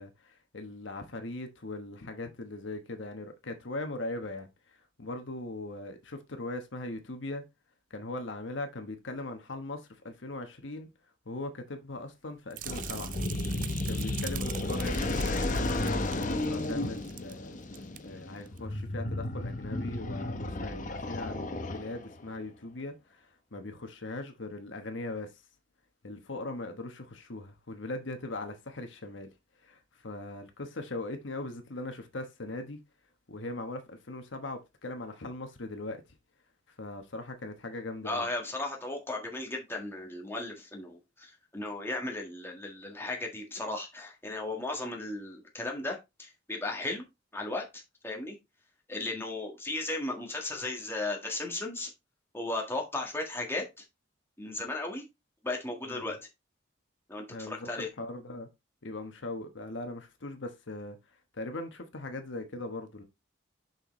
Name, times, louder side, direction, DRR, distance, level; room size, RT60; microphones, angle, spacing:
voice 1, 0.0-7.4 7.9-10.9 11.3-13.1 13.9-17.6 18.0-25.4 26.0-29.3 29.6-32.8 33.3-36.0 36.8-38.3 55.9-56.2 57.3-58.5 58.8-61.0 61.3-63.0, left 2 dB, 75° left, 1.2 m, -40 dB
sound 1, 12.5-17.4 17.6-18.0 18.5-18.6, right 12 dB, 45° right, 0.4 m, -43 dB
sound 2, 12.7-22.2, left 2 dB, 40° left, 0.8 m, -33 dB
voice 2, 38.0-47.0 47.3-48.4 48.9-51.9 52.3-53.8 54.4-55.0 55.4-56.2 57.1-57.9, left 2 dB, 10° left, 1.6 m, -36 dB
6.5 x 5.8 x 3.2 m
head